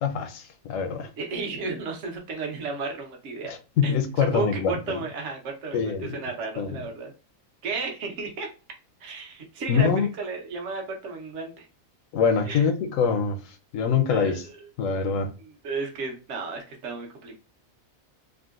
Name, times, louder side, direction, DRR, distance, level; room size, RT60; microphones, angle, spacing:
voice 1, 0.0-1.1 3.5-5.0 5.7-6.2 6.6-6.8 9.7-10.1 12.1-14.5 14.8-15.3, left 6 dB, 70° left, 0.9 m, -25 dB
voice 2, 1.2-3.5 3.8-7.1 7.6-8.5 9.0-11.7 12.4-12.7 14.1-14.6 14.8-15.0 15.4-17.4, right 4 dB, 60° right, 1.1 m, -33 dB
3.6 x 2.1 x 2.4 m
omnidirectional pair, 1.5 m